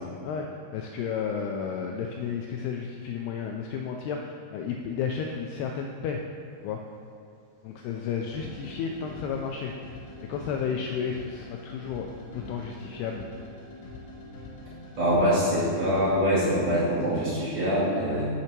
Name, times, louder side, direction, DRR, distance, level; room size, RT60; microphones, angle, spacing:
voice 1, 0.2-6.2 6.6-6.8 7.6-9.7 10.3-12.1 12.3-13.3 18.1-18.2, left 6 dB, 85° left, 2 dB, 2.4 m, -32 dB
sound 1, 7.8-16.1, left 2 dB, 50° left, 2.4 m, -44 dB
voice 2, 15.0-18.2, equal, 45° right, -11 dB, 2.7 m, -24 dB
7.1 x 5.7 x 5.9 m, 2.5 s
omnidirectional pair, 5.0 m